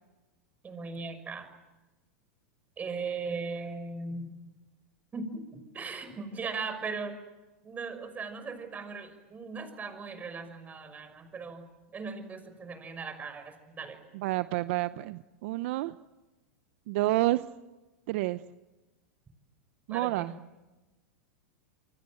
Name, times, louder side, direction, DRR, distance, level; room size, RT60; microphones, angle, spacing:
voice 1, 0.6-1.5 2.8-4.2 5.1-7.1 7.6-11.6 11.9-14.0 19.9-20.3, right 4 dB, 20° right, 9 dB, 6.1 m, -38 dB
voice 2, 14.1-16.0 16.9-17.4 18.1-18.4 19.9-20.3, right 17 dB, 60° right, 13 dB, 0.8 m, -29 dB
28.0 x 24.0 x 7.8 m, 1.1 s
hypercardioid pair, 115°, 7 cm